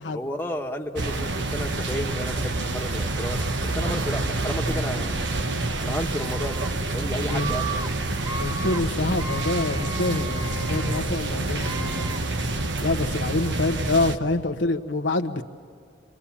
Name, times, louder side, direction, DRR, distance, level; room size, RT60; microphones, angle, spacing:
voice 1, 0.1-5.2 5.8-6.7 6.9-7.7, left 1 dB, 10° left, 0 dB, 1.4 m, -32 dB
sound 1, 1.0-14.2, right 2 dB, 70° right, 1.3 m, -27 dB
Screaming, 6.1-6.7 7.2-7.9 8.2-8.8 9.1-11.0 11.5-12.2, right 3 dB, 20° right, 1.0 m, -35 dB
Bowed string instrument, 7.0-12.7, left 2 dB, 45° left, 1.2 m, -42 dB
voice 2, 8.4-12.1 12.8-15.4, left 2 dB, 75° left, 6 dB, 1.2 m, -26 dB
29.0 x 23.0 x 7.4 m, 2.3 s
head